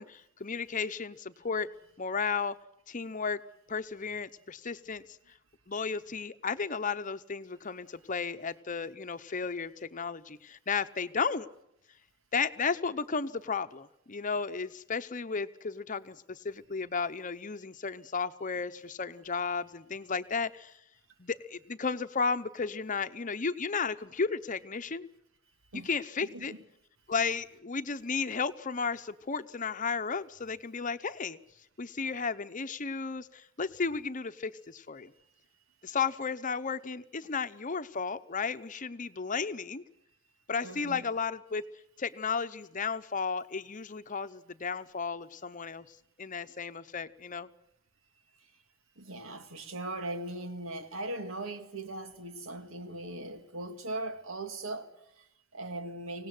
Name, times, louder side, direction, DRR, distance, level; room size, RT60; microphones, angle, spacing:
voice 1, 0.0-1.7 2.0-2.6 2.9-3.4 3.7-5.0 5.7-11.5 12.3-20.7 21.2-25.1 25.8-26.5 27.1-31.4 31.8-35.1 35.8-39.8 40.5-41.6 42.0-45.8 46.2-47.5, left 5 dB, 40° left, 0.8 m, -34 dB
voice 2, 26.2-26.6 40.6-41.1 48.4-48.6 49.0-56.3, right 2 dB, 90° right, 2.1 m, -40 dB
25.0 x 18.0 x 7.8 m
head